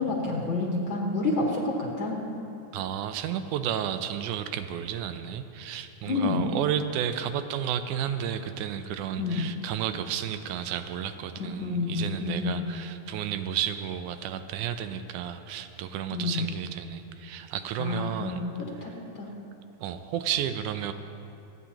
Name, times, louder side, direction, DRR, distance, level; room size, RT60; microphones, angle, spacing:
voice 1, 0.0-2.2 6.0-6.5 9.2-9.5 11.4-12.7 16.1-16.4 17.8-18.5 18.8-19.3, left 3 dB, 50° left, -3 dB, 1.7 m, -29 dB
voice 2, 2.7-18.4 19.8-20.9, right 9 dB, 85° right, 9 dB, 2.1 m, -32 dB
28.0 x 9.6 x 2.9 m, 2.8 s
omnidirectional pair, 3.5 m